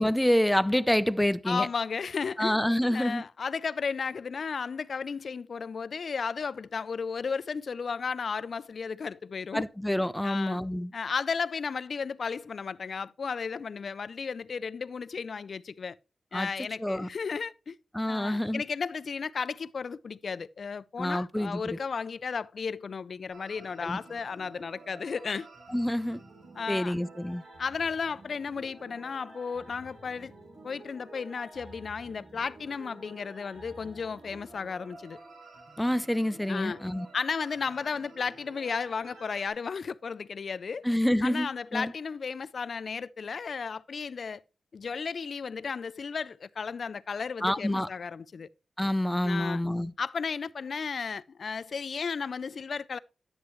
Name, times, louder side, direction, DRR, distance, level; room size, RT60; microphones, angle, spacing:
voice 1, 0.0-1.7 2.4-3.2 9.5-10.9 16.3-16.5 16.8-17.1 17.9-18.6 21.0-21.8 23.8-24.0 25.7-26.2 26.7-27.4 35.8-37.1 40.8-41.9 47.4-47.9 48.8-49.9, left 1 dB, 5° left, 0.5 m, -27 dB
voice 2, 1.5-2.6 2.9-9.7 10.2-10.6 10.9-16.0 16.3-17.8 18.1-25.5 26.6-26.9 27.6-30.3 30.6-35.2 36.5-36.8 37.1-40.8 41.2-44.4 44.7-48.5 49.2-49.6 50.0-53.0, left 5 dB, 65° left, 0.4 m, -34 dB
sound 1, 23.3-39.5, right 2 dB, 85° right, 6.9 m, -50 dB
11.0 x 9.5 x 3.1 m
cardioid pair, 75°, 0 cm